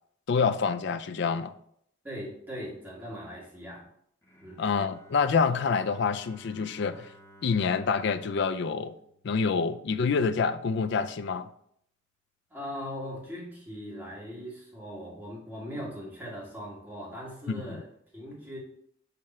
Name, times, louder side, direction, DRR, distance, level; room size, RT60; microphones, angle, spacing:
voice 1, 0.3-1.5 4.6-7.1 7.4-9.0 9.2-11.5 17.5-17.8, left 5 dB, 60° left, 0.4 m, -27 dB
voice 2, 2.0-3.9 4.4-4.6 12.5-17.9 18.1-18.6, equal, 10° right, 2.1 m, -40 dB
Bowed string instrument, 4.2-10.2, equal, 15° left, 1.1 m, -56 dB
6.7 x 3.6 x 4.2 m
head